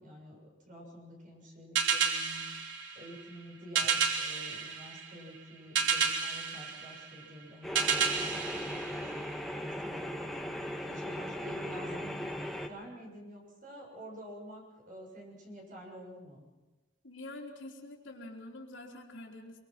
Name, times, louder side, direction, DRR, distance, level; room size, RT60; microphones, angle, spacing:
voice 1, 0.0-2.7 3.0-16.4, equal, 45° right, -1 dB, 6.9 m, -49 dB
sound 1, 1.7-9.6, right 6 dB, 80° right, 3.1 m, -32 dB
sound 2, 7.6-12.7, equal, ahead, 1.4 m, -38 dB
voice 2, 17.0-19.6, left 2 dB, 85° left, 0 dB, 3.8 m, -46 dB
24.5 x 24.0 x 6.0 m, 1.1 s
head